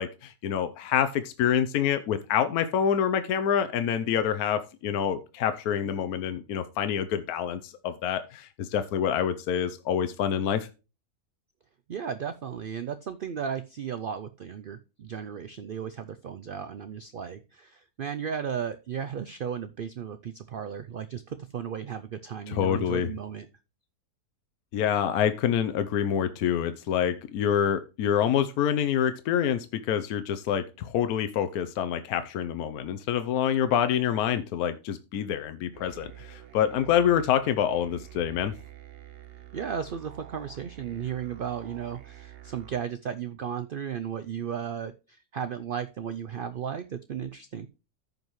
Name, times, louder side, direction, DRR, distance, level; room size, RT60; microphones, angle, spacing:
voice 1, 0.0-10.7 22.5-23.1 24.7-38.5, left 9 dB, 80° left, 10 dB, 1.2 m, -27 dB
voice 2, 11.9-23.5 39.5-47.7, right 8 dB, 90° right, 11 dB, 0.4 m, -35 dB
sound 1, 35.7-42.8, right 13 dB, 45° right, 1.0 m, -47 dB
14.0 x 5.3 x 3.1 m, 0.31 s
omnidirectional pair, 1.6 m